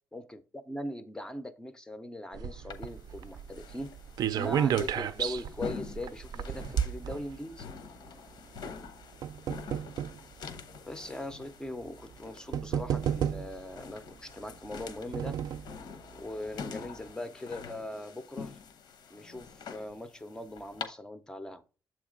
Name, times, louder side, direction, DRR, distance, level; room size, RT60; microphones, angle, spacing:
voice 1, 0.1-4.0 4.3-7.7 10.9-15.4 16.1-18.6 19.1-21.6, left 1 dB, 10° left, 10 dB, 0.4 m, -40 dB
sound 1, 2.3-7.8 8.7-10.2 11.0-11.1 12.1-12.2 12.5-13.7 14.6-15.7 16.2-16.3 16.5-16.6, right 9 dB, 65° right, 0.4 m, -32 dB
sound 2, 2.7-20.9, left 6 dB, 85° left, 1.0 m, -46 dB
7.6 x 3.1 x 5.0 m, 0.35 s
wide cardioid pair, 175°, 7 cm